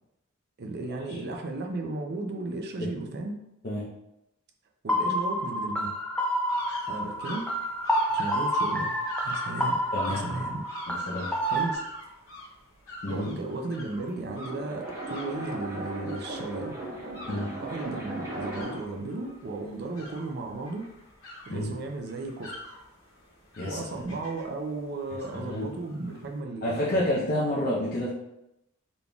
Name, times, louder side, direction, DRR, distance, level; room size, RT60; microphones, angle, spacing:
voice 1, 0.6-3.4 4.8-5.9 6.9-7.4 8.1-8.9 9.2-9.8 10.1-10.6 11.5-11.8 13.1-16.7 17.6-20.9 21.5-22.5 23.6-27.0, right 2 dB, 50° right, 3 dB, 0.5 m, -35 dB
sound 1, 4.9-11.7, equal, 5° left, 0.4 m, -29 dB
sound 2, 6.5-26.4, left 1 dB, 70° left, 1.4 m, -45 dB
voice 2, 9.9-10.3 10.9-11.3 13.0-13.3 17.3-17.5 21.5-21.7 23.6-23.8 25.3-25.7 26.6-28.1, left 1 dB, 45° left, -7 dB, 0.7 m, -29 dB
sound 3, 14.2-18.9, right 1 dB, 15° right, 0.9 m, -37 dB
4.0 x 3.5 x 2.3 m, 0.87 s
head